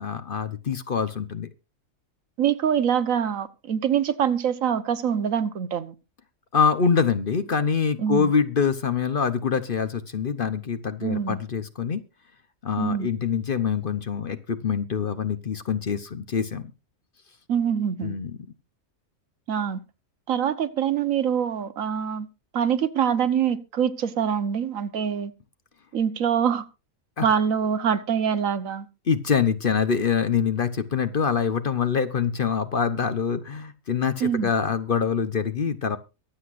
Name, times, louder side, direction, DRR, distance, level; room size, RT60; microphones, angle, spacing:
voice 1, 0.0-1.5 6.5-12.0 12.6-16.7 18.0-18.4 27.2-27.3 29.1-36.0, left 6 dB, 45° left, 0.9 m, -25 dB
voice 2, 2.4-6.0 8.0-8.3 11.0-11.4 12.8-13.1 17.5-18.2 19.5-19.8 20.3-22.3 22.5-25.3 25.9-26.7 27.2-28.9 34.2-34.5, right 8 dB, 75° right, 1.3 m, -24 dB
23.0 x 8.0 x 2.5 m
omnidirectional pair, 1.4 m